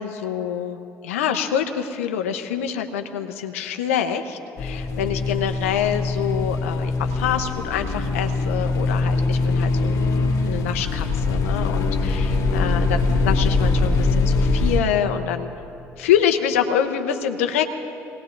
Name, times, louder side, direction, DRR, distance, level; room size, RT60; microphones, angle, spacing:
voice 1, 0.0-15.5 16.0-17.7, left 9 dB, 90° left, 6 dB, 0.8 m, -26 dB
sound 1, 4.6-14.8, left 3 dB, 55° left, 2.0 m, -22 dB
26.5 x 18.5 x 2.6 m, 2.7 s
hypercardioid pair, 60°, 7 cm